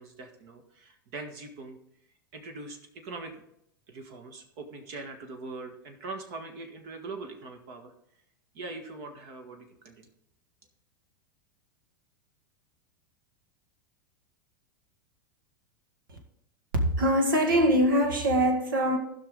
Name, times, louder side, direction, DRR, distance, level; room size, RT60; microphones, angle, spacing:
voice 1, 0.0-1.8 2.3-2.8 3.0-3.4 3.9-7.9 8.5-10.1, right 3 dB, 55° right, 1.7 m, -42 dB
voice 2, 16.7-19.0, equal, 80° right, 2.0 m, -23 dB
15.0 x 5.9 x 3.8 m
hypercardioid pair, 100°, 11 cm